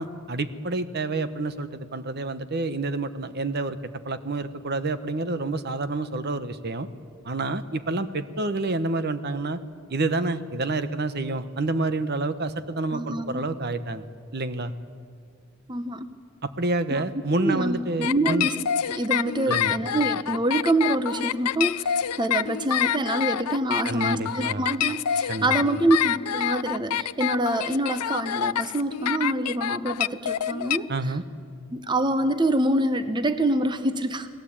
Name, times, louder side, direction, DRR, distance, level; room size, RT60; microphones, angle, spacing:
voice 1, 0.0-3.8 4.0-6.9 7.2-9.6 9.9-14.0 14.3-14.7 16.4-18.5 19.5-19.8 23.8-24.7 25.3-25.5 30.9-31.2, right 2 dB, 45° right, 11 dB, 1.0 m, -28 dB
voice 2, 12.9-13.4 15.7-16.1 16.9-17.0 17.4-18.5 18.8-30.9 31.7-34.3, right 1 dB, 20° right, 10 dB, 0.9 m, -26 dB
sound 1, 18.0-30.8, left 9 dB, 90° left, 0.6 m, -26 dB
30.0 x 19.5 x 8.8 m, 2.2 s
head